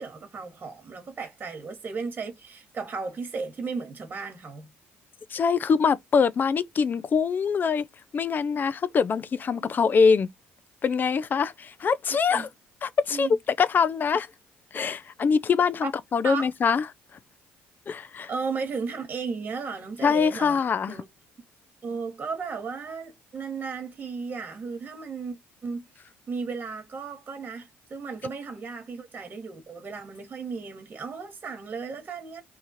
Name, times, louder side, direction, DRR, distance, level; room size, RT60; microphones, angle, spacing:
voice 1, 0.0-4.7 9.5-9.6 12.3-12.5 13.1-13.3 15.8-15.9 16.2-16.5 18.3-21.1 21.8-25.4 25.6-25.9 26.3-32.4, right 5 dB, 35° right, 1.4 m, -35 dB
voice 2, 5.3-7.8 8.1-10.3 10.8-12.5 12.8-13.3 13.6-14.3 14.7-16.8 17.9-18.3 20.0-21.0, left 5 dB, 40° left, 0.5 m, -23 dB
3.1 x 2.4 x 4.1 m
supercardioid pair, 85°, 5 cm